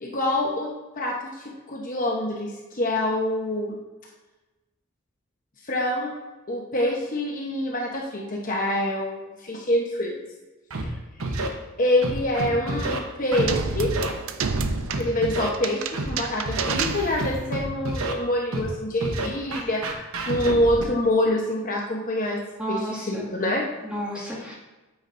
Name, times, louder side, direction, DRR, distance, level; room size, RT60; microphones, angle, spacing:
voice 1, 0.0-3.8 5.6-6.1 6.5-10.2 10.8-11.0 11.8-13.9 14.8-23.7, left 1 dB, 40° left, -2 dB, 1.0 m, -26 dB
Scratching (performance technique), 10.7-10.8 11.2-11.5 12.0-13.0 13.3-13.5 13.8-14.1 14.6-15.5 15.9-16.1 16.5-16.7 17.2-18.1 18.5-18.7 19.0-20.8, right 2 dB, 85° right, 1.0 m, -28 dB
sound 1, 13.5-17.6, right 5 dB, 70° right, 0.5 m, -30 dB
voice 2, 22.6-23.3 23.8-24.6, right 1 dB, 5° right, -6 dB, 2.1 m, -32 dB
8.9 x 8.6 x 2.6 m, 1.1 s
head